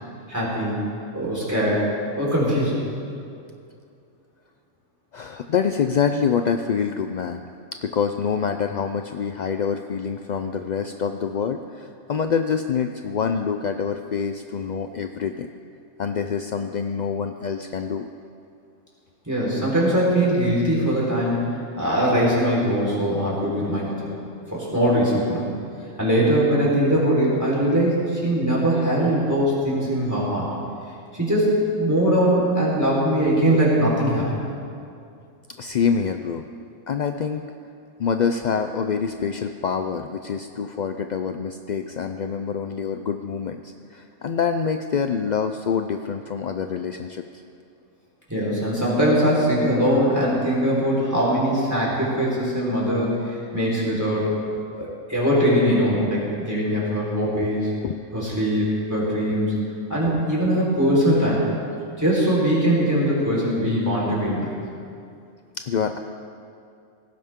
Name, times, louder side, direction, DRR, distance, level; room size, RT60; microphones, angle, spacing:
voice 1, 0.3-0.8 1.1-1.9 2.2-2.8 19.3-24.1 24.5-25.5 26.0-30.5 31.1-34.2 48.3-54.3 54.8-57.7 58.1-59.6 59.9-61.4 62.0-64.5, equal, 15° right, -6 dB, 4.2 m, -21 dB
voice 2, 5.1-7.4 7.8-15.5 16.0-18.1 35.6-36.5 36.9-37.5 38.0-47.2 54.8-54.9 57.3-57.5 57.8-58.0 60.0-60.2 65.7-66.0, left 6 dB, 65° left, 7 dB, 0.4 m, -26 dB
17.5 x 15.5 x 3.7 m, 2.4 s
omnidirectional pair, 1.3 m